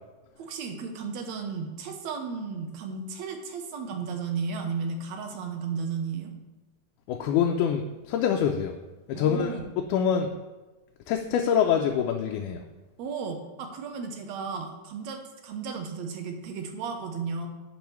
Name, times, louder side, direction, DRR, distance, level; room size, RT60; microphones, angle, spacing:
voice 1, 0.4-6.3 9.1-9.6 13.0-17.5, right 5 dB, 70° right, 4 dB, 1.9 m, -34 dB
voice 2, 7.1-8.8 9.1-10.3 11.1-12.6, left 8 dB, 85° left, 3 dB, 2.0 m, -25 dB
10.5 x 5.4 x 3.1 m, 1.2 s
omnidirectional pair, 3.5 m